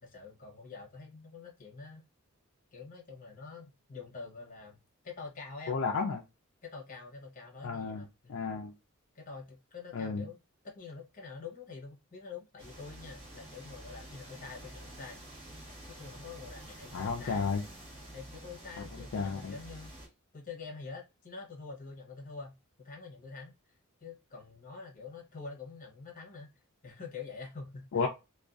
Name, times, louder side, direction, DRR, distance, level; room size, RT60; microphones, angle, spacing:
voice 1, 0.0-2.0 2.7-4.8 5.0-5.8 6.6-8.4 9.1-10.4 10.6-15.2 15.9-17.5 18.1-19.9 20.3-26.5 26.8-28.0, left 4 dB, 40° left, 0.8 m, -46 dB
voice 2, 5.7-6.2 7.6-8.0 8.3-8.7 9.9-10.2 16.9-17.6 19.1-19.5 27.9-28.1, left 5 dB, 60° left, 0.4 m, -32 dB
sound 1, 12.6-20.1, right 1 dB, 25° right, 1.2 m, -49 dB
2.5 x 2.2 x 2.3 m
head